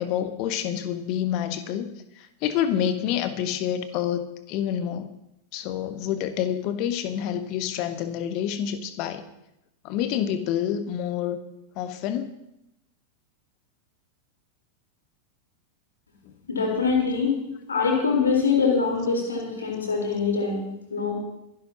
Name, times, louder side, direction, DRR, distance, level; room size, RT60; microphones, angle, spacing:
voice 1, 0.0-1.9 2.2-5.1 5.5-9.2 9.8-11.4 11.7-12.3 17.7-17.8, left 10 dB, 40° left, 10 dB, 1.2 m, -28 dB
voice 2, 16.5-17.3 17.7-21.1, left 5 dB, 75° left, 0 dB, 4.0 m, -24 dB
26.0 x 12.0 x 2.9 m, 0.87 s
figure-of-eight pair, 90°, 0 cm